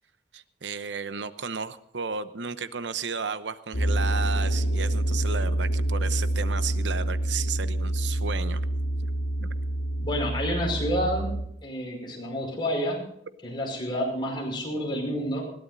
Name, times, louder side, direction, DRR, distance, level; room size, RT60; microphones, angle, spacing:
voice 1, 0.3-8.6 9.4-9.5, right 5 dB, 85° right, 13 dB, 0.8 m, -33 dB
sound 1, 3.7-11.4, right 1 dB, 90° left, 2.4 m, -27 dB
voice 2, 10.0-13.1 13.4-15.4, equal, 25° left, 0 dB, 5.4 m, -29 dB
20.5 x 17.0 x 2.7 m, 0.73 s
head